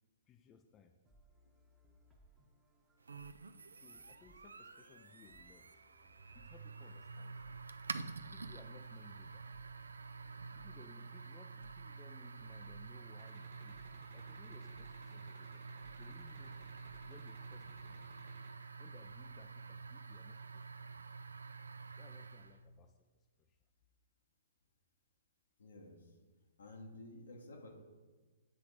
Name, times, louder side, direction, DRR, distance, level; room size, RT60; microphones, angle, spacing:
voice 1, 0.3-1.0 3.7-5.8 6.3-9.5 10.5-15.6 16.0-16.6 17.0-18.1 18.8-21.1 21.8-23.6, left 7 dB, 20° left, 7 dB, 0.4 m, -62 dB
sound 1, 1.1-17.9, right 1 dB, 10° right, 0.9 m, -68 dB
sound 2, 3.1-22.6, right 4 dB, 85° right, 0.3 m, -49 dB
sound 3, 13.2-18.5, right 3 dB, 45° right, 1.4 m, -60 dB
voice 2, 25.6-26.0 26.6-27.8, left 1 dB, 75° left, 1 dB, 1.1 m, -52 dB
7.7 x 3.8 x 4.8 m, 1.3 s
hypercardioid pair, 130°, 0 cm